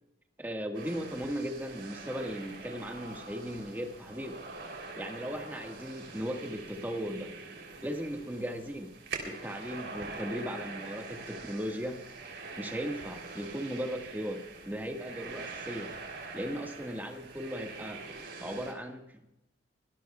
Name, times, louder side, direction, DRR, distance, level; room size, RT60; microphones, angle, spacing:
voice 1, 0.4-4.4 4.9-7.3 7.8-8.9 9.2-12.0 12.6-15.9 16.3-18.0 18.4-19.3, equal, 10° right, 2 dB, 1.6 m, -37 dB
sound 1, 0.7-18.7, right 4 dB, 75° right, 3.4 m, -44 dB
24.5 x 18.5 x 2.4 m, 0.92 s
head